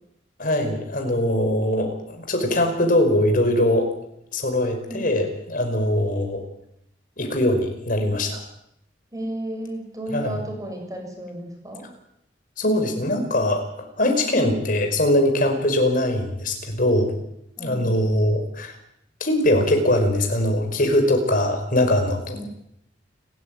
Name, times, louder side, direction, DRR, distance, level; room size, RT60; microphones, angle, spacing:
voice 1, 0.4-3.9 4.3-6.4 7.2-8.4 10.1-10.4 12.6-17.1 17.6-18.7 19.2-22.4, left 1 dB, 50° left, 5 dB, 5.3 m, -22 dB
voice 2, 4.9-5.2 9.1-11.9 17.6-17.9 22.3-22.5, equal, 20° right, 2 dB, 6.9 m, -33 dB
29.0 x 14.0 x 9.6 m, 0.79 s
head